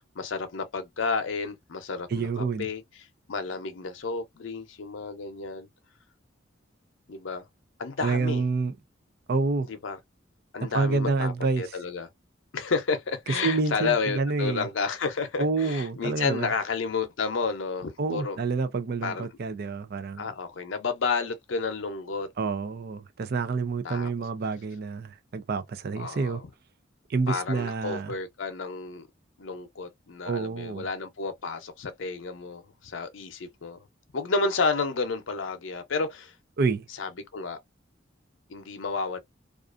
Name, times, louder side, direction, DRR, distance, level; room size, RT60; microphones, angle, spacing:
voice 1, 0.2-2.8 3.3-5.7 7.1-7.4 7.8-8.4 9.7-10.0 10.5-12.1 12.5-18.4 19.0-19.3 20.2-22.3 23.8-24.1 26.0-26.4 27.3-29.1 29.4-33.9 34.1-36.3 37.0-37.6 38.5-39.2, left 4 dB, 80° left, 0.6 m, -31 dB
voice 2, 2.1-2.7 8.0-8.7 9.3-9.7 10.6-11.6 13.4-14.7 15.4-16.5 18.0-20.3 22.4-26.4 27.1-28.1 30.3-30.9 36.6-36.8, right 4 dB, 55° right, 0.4 m, -28 dB
2.4 x 2.4 x 2.4 m
head